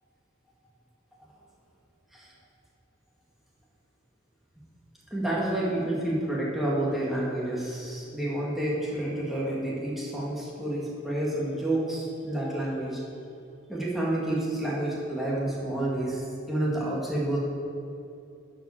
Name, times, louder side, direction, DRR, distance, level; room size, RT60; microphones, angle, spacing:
voice 1, 5.1-13.0 13.7-17.4, right 1 dB, ahead, -6 dB, 2.1 m, -29 dB
11.0 x 5.1 x 7.2 m, 2.6 s
head